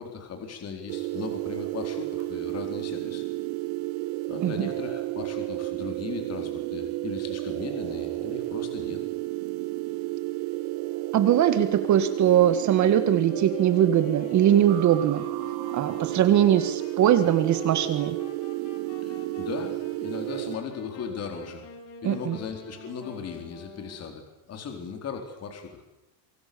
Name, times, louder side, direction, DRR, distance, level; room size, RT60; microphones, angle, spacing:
voice 1, 0.0-3.2 4.3-9.0 19.0-21.6 22.0-25.8, left 6 dB, 30° left, 4 dB, 4.1 m, -37 dB
sound 1, 0.9-20.6, right 18 dB, 80° right, 1.5 m, -32 dB
voice 2, 11.1-15.2 15.7-18.2 22.0-22.4, right 10 dB, 35° right, 10 dB, 1.9 m, -21 dB
Wind instrument woodwind instrument, 13.2-24.2, left 3 dB, 65° left, 6.3 m, -46 dB
28.5 x 24.5 x 7.0 m, 0.94 s
cardioid pair, 155°, 50 cm